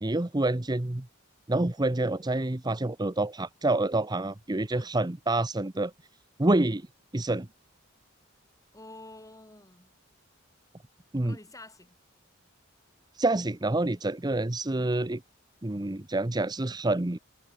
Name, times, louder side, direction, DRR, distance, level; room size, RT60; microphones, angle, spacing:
voice 1, 0.0-1.1 1.5-5.9 6.4-6.9 7.1-7.5 11.1-11.4 13.1-15.2 15.6-17.2, right 2 dB, 20° right, 0.8 m, -27 dB
voice 2, 8.7-9.9 11.2-12.0, left 2 dB, 15° left, 7.1 m, -49 dB
head